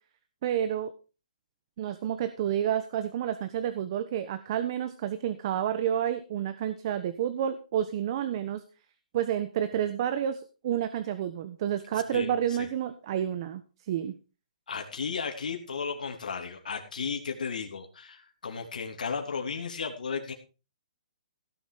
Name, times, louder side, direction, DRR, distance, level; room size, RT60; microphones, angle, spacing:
voice 1, 0.4-0.9 1.8-8.6 9.1-14.1, right 10 dB, 35° right, 11 dB, 1.2 m, -30 dB
voice 2, 14.7-20.3, left 5 dB, 85° left, 2 dB, 3.3 m, -34 dB
16.5 x 7.9 x 5.0 m, 0.33 s
hypercardioid pair, 165°, 4 cm